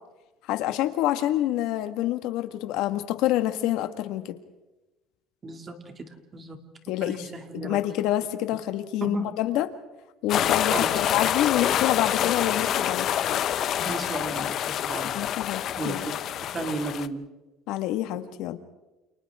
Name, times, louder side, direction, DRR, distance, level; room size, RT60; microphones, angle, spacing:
voice 1, 0.5-4.4 6.9-7.3 7.5-9.7 10.2-13.1 15.1-16.1 17.7-18.6, left 13 dB, 70° left, 8 dB, 1.8 m, -27 dB
voice 2, 5.4-6.6 7.0-7.8 9.0-9.3 10.7-10.9 13.8-14.5 14.9-15.2 15.8-16.1 16.5-17.2, right 3 dB, 25° right, 5 dB, 2.7 m, -33 dB
sound 1, 10.3-17.1, left 10 dB, 45° left, 0.9 m, -26 dB
29.5 x 29.0 x 3.8 m, 1.1 s
cardioid pair, 135°, 0 cm